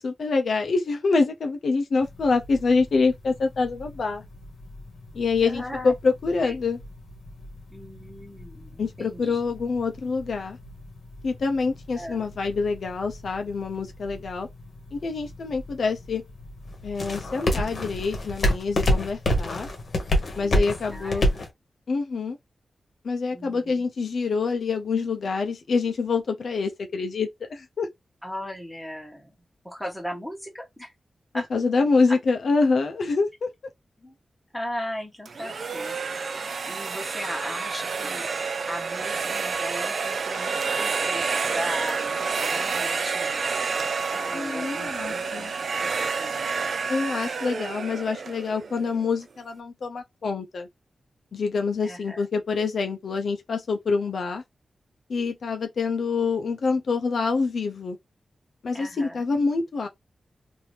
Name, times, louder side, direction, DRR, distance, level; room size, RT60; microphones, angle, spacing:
voice 1, 0.0-4.2 5.1-6.8 8.8-10.6 11.2-14.5 14.9-16.2 16.8-19.7 20.4-21.3 21.9-22.4 23.0-27.9 31.3-33.5 44.3-45.5 46.9-50.7 51.3-54.4 55.1-58.0 58.6-59.9, left 4 dB, 70° left, 0.5 m, -26 dB
sound 1, 2.0-21.5, left 1 dB, 50° left, 1.1 m, -31 dB
voice 2, 5.4-5.9 6.4-6.5 7.7-9.4 11.9-12.3 20.4-21.2 23.3-23.8 28.2-29.4 29.6-30.9 31.3-31.5 32.1-32.2 34.0-34.2 34.5-36.0 36.3-38.3 38.7-43.3 44.1-46.5 51.8-52.3 58.7-59.3, equal, 5° left, 1.1 m, -37 dB
sound 2, 35.3-49.1, right 5 dB, 60° right, 0.4 m, -29 dB
2.9 x 2.6 x 3.1 m
wide cardioid pair, 135°, 0 cm